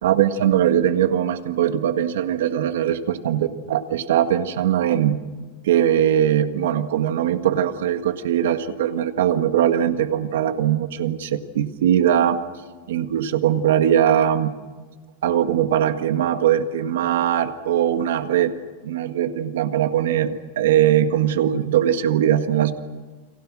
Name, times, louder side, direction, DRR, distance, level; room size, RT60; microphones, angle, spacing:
voice 1, 0.0-3.0 3.2-5.2 5.6-12.4 12.9-14.5 15.2-18.5 18.8-22.7, right 10 dB, 80° right, 8 dB, 1.7 m, -20 dB
29.5 x 24.0 x 6.3 m, 1.4 s
supercardioid pair, 160°, 0 cm